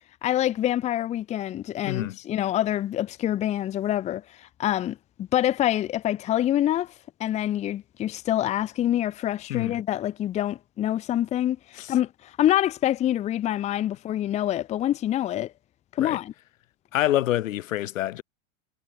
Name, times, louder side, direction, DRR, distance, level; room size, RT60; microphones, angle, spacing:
voice 1, 0.2-6.9 7.2-15.5 15.9-16.3, left 12 dB, 15° left, 1.2 m, -26 dB
voice 2, 1.8-2.2 9.5-9.7 11.8-11.9 16.0-16.2 16.9-18.2, left 14 dB, 75° left, 3.6 m, -26 dB
supercardioid pair, 170°, 40 cm